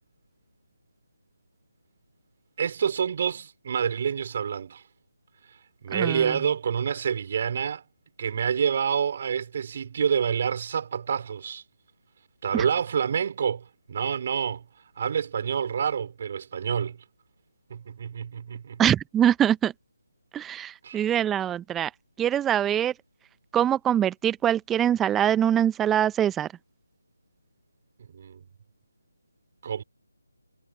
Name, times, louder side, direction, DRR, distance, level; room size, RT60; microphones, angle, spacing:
voice 1, 2.6-4.8 5.8-7.8 8.2-11.6 12.4-14.6 15.0-17.0 17.7-18.8 20.8-21.1 28.1-28.4 29.6-29.8, right 7 dB, 40° right, 4.5 m, -27 dB
voice 2, 5.9-6.4 12.5-12.6 18.8-19.7 20.3-21.9 22.2-22.9 23.5-26.5, right 10 dB, 10° right, 0.9 m, -23 dB
figure-of-eight pair, 155°, 0 cm